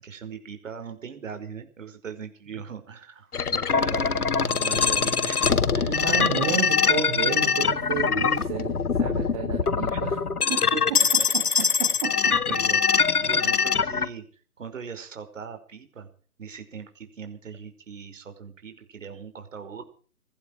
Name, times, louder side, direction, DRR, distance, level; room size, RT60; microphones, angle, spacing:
voice 1, 0.0-6.7 9.6-10.0 12.5-14.2 14.6-16.1 16.4-19.8, right 6 dB, 55° right, 7 dB, 5.5 m, -40 dB
sound 1, 3.3-14.1, left 6 dB, 80° left, 1.9 m, -23 dB
voice 2, 5.8-10.1 10.5-11.0 11.8-12.3, right 8 dB, 25° right, 2 dB, 3.7 m, -31 dB
19.5 x 15.5 x 4.8 m, 0.43 s
hypercardioid pair, 160°, 45 cm